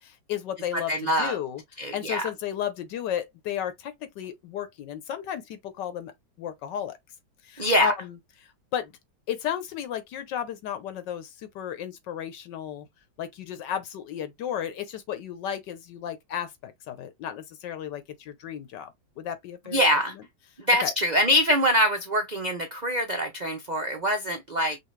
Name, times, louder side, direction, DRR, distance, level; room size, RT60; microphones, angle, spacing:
voice 1, 0.0-1.6 1.9-6.1 6.4-7.0 7.4-8.2 8.7-8.9 9.3-12.9 13.2-20.2 20.8-20.9, left 9 dB, 75° left, 1.4 m, -33 dB
voice 2, 0.9-1.4 1.8-2.2 7.6-7.9 19.7-20.1 20.7-24.8, equal, 50° right, 0.5 m, -24 dB
5.7 x 2.5 x 3.1 m
omnidirectional pair, 2.0 m